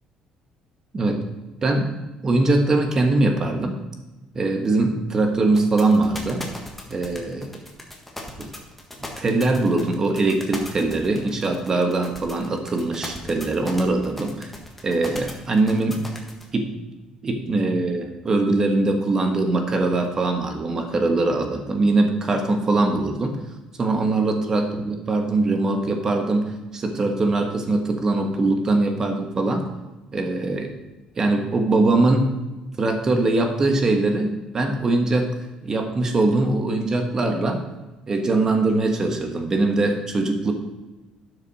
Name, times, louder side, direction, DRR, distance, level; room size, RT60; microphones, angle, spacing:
voice 1, 1.6-1.9 2.2-3.8 4.3-6.5 6.9-7.5 8.4-8.5 9.2-14.5 14.8-16.0 16.5-16.8 17.2-23.4 23.8-29.7 30.1-30.7 31.2-32.3 32.8-35.3 35.6-37.6 38.1-40.5, right 2 dB, 25° right, 4 dB, 1.4 m, -22 dB
sound 1, 5.5-16.4, left 2 dB, 5° left, 1.5 m, -37 dB
12.0 x 6.7 x 4.2 m, 1.1 s
cardioid pair, 145°, 2 cm